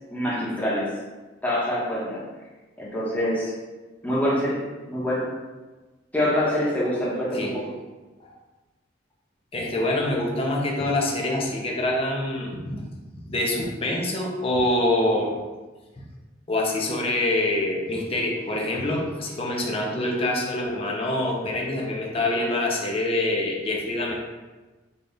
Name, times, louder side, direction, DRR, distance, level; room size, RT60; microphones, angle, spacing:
voice 1, 0.1-0.9 1.4-2.2 2.8-3.5 4.0-4.6 4.9-5.2 6.1-7.6, left 1 dB, 10° left, -8 dB, 1.0 m, -25 dB
voice 2, 9.5-12.8 13.2-15.4 16.5-24.1, left 1 dB, 30° left, -1 dB, 0.6 m, -25 dB
4.0 x 2.4 x 3.4 m, 1.2 s
head